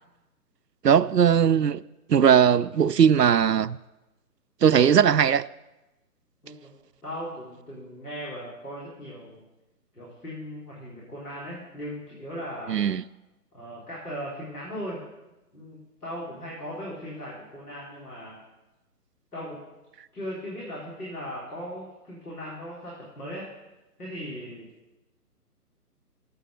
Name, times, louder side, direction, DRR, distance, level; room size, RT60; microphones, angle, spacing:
voice 1, 0.8-1.8 2.1-3.8 4.6-5.5 12.7-13.0, right 8 dB, 85° right, 0.6 m, -19 dB
voice 2, 7.0-9.4 9.9-12.8 13.5-15.0 15.5-18.4 19.3-19.6 20.1-23.5 24.0-24.7, equal, 65° left, 4.0 m, -38 dB
12.0 x 8.7 x 6.5 m
figure-of-eight pair, 140°, 47 cm